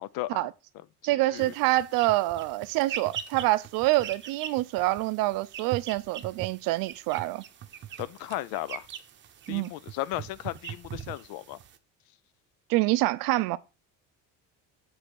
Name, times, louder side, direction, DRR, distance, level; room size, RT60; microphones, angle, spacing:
voice 1, 0.0-0.4 1.1-1.5 8.0-8.9 9.5-11.6, left 15 dB, 80° left, 0.6 m, -35 dB
voice 2, 1.0-7.4 9.5-9.7 12.7-13.6, right 18 dB, 75° right, 0.6 m, -26 dB
sound 1, 1.4-11.8, right 9 dB, 35° right, 0.7 m, -42 dB
8.2 x 3.4 x 6.2 m
cardioid pair, 155°, 35 cm